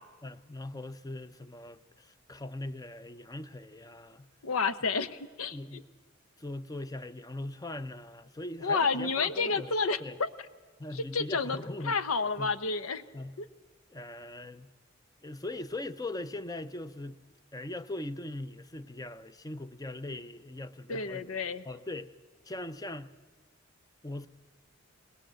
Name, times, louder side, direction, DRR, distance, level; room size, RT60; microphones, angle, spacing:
voice 1, 0.2-4.3 5.5-5.9 6.4-9.7 10.0-10.2 10.8-12.0 12.4-12.5 13.1-13.3 13.9-14.7 15.2-17.2 17.5-21.3 21.6-22.1 22.4-23.1 24.0-24.3, left 1 dB, 15° left, 0.6 m, -40 dB
voice 2, 4.4-5.6 8.6-10.3 10.9-11.6 11.8-13.0 13.4-13.5 20.9-21.6, left 4 dB, 85° left, 1.0 m, -30 dB
21.0 x 20.5 x 7.7 m
head